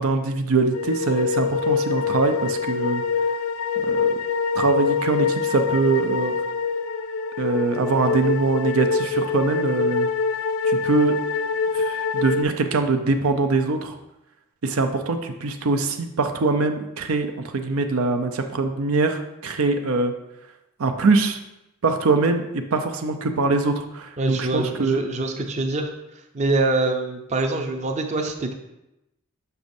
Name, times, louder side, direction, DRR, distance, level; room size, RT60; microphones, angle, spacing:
voice 1, 0.0-3.0 3.8-4.1 4.6-6.3 7.4-10.1 10.6-11.1 11.7-13.9 14.6-17.3 17.5-20.1 20.8-21.4 21.8-25.0, right 3 dB, 85° right, 6 dB, 0.6 m, -23 dB
sound 1, 0.7-12.4, left 5 dB, 85° left, 0.3 m, -25 dB
voice 2, 24.2-25.9 26.3-28.5, right 2 dB, 35° right, 3 dB, 0.5 m, -24 dB
6.8 x 6.0 x 2.6 m, 0.91 s
head